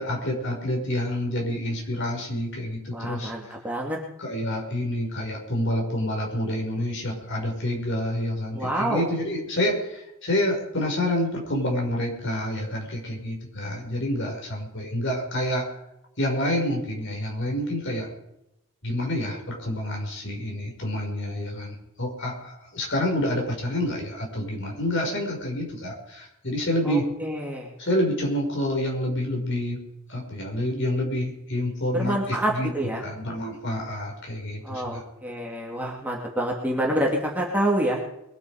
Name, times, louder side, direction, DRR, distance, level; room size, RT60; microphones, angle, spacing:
voice 1, 0.0-3.3 4.2-15.7 16.2-18.1 18.8-27.1 27.8-29.8 30.1-32.7 33.0-35.0, left 1 dB, 55° left, 0 dB, 5.6 m, -28 dB
voice 2, 2.9-4.0 8.5-9.1 26.8-27.7 31.9-33.0 34.6-38.0, right 1 dB, 5° right, -2 dB, 2.6 m, -27 dB
23.0 x 9.4 x 5.0 m, 0.85 s
head